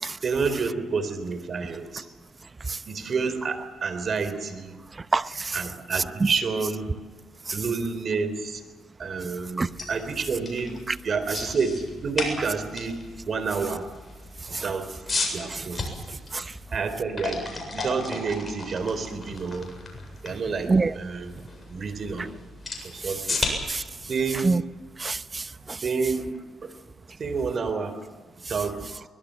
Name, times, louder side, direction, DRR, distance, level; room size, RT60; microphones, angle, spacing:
voice 1, 0.2-2.1 2.9-4.8 5.5-6.9 7.5-8.6 9.0-10.8 11.0-13.0 13.3-13.8 14.5-14.9 15.3-15.8 16.7-19.7 20.2-21.4 21.7-22.4 22.8-23.4 24.1-24.5 25.8-26.3 27.2-27.9 28.5-29.0, right 5 dB, 45° right, 4.0 m, -29 dB
voice 2, 5.1-5.7 5.9-6.3 7.5-7.6 9.6-9.7 10.9-11.0 14.5-14.7 15.5-15.7 16.3-16.5 20.7-20.9 23.0-23.8 24.4-24.6 25.0-25.8, right 3 dB, 25° right, 0.8 m, -27 dB
sound 1, 9.6-25.5, left 3 dB, 25° left, 7.7 m, -35 dB
23.5 x 21.0 x 7.8 m
cardioid pair, 90°, 0 cm